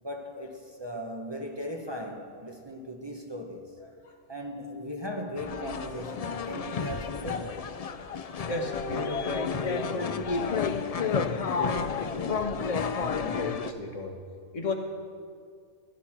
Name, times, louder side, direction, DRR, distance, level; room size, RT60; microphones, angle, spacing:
voice 1, 0.0-7.7, equal, 25° right, 1.0 m, -38 dB
sound 1, 5.4-13.7, left 5 dB, 55° left, 0.4 m, -31 dB
voice 2, 8.5-12.6 13.0-14.1 14.5-14.7, left 2 dB, 85° left, 2.0 m, -36 dB
15.0 x 11.5 x 6.0 m
omnidirectional pair, 1.3 m